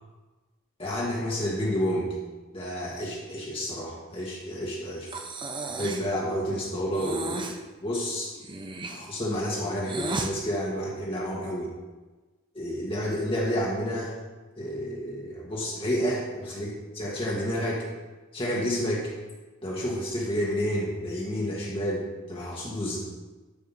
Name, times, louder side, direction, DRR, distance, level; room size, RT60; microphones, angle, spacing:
voice 1, 0.8-2.1 2.5-5.1 5.8-8.3 8.9-11.7 12.6-14.1 14.6-17.8 18.3-19.1 19.6-23.0, equal, 25° left, -5 dB, 1.6 m, -30 dB
Breathing, 5.1-6.1 6.9-7.6 8.4-10.3, right 2 dB, 25° right, 0.7 m, -34 dB
12.5 x 5.0 x 5.5 m, 1.2 s
head